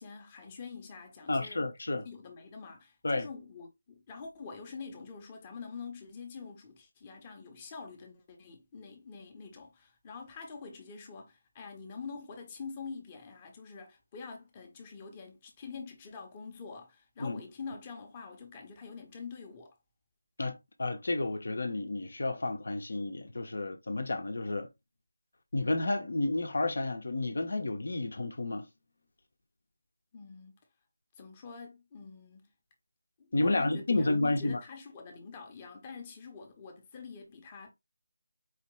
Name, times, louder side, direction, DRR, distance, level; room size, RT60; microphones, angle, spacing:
voice 1, 0.0-1.6 2.0-19.8 30.1-30.6 31.1-32.5 33.2-37.7, left 5 dB, 20° left, 0.9 m, -46 dB
voice 2, 1.3-2.1 3.0-3.3 17.2-17.4 20.4-24.7 25.5-28.7 33.3-34.6, left 2 dB, 55° left, 0.8 m, -31 dB
4.8 x 3.0 x 3.0 m
figure-of-eight pair, 155°, 0 cm